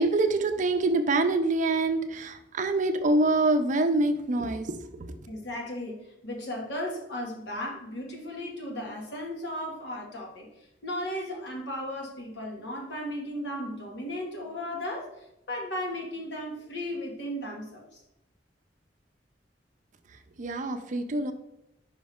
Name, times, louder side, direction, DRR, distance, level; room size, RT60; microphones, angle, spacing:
voice 1, 0.0-5.1 20.4-21.3, right 2 dB, 45° right, 8 dB, 0.5 m, -25 dB
voice 2, 5.3-6.0 6.2-10.5 10.8-15.1 15.5-18.0, left 1 dB, 80° left, -1 dB, 1.6 m, -35 dB
5.2 x 5.1 x 3.6 m, 0.85 s
head